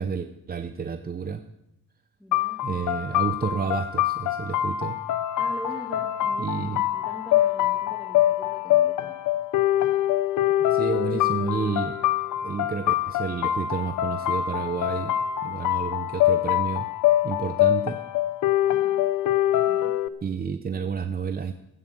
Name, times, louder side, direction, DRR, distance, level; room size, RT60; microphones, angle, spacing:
voice 1, 0.0-1.4 2.6-5.0 6.4-6.8 10.7-12.0 12.4-15.1 15.4-16.9 17.2-18.0 20.2-21.5, right 6 dB, 30° right, 9 dB, 0.7 m, -30 dB
voice 2, 2.2-2.6 5.4-9.2 18.7-19.1 19.7-20.0, left 1 dB, ahead, -2 dB, 2.4 m, -43 dB
sound 1, 2.3-20.1, left 13 dB, 75° left, 0.8 m, -24 dB
15.0 x 8.5 x 7.5 m, 0.85 s
cardioid pair, 90°, 30 cm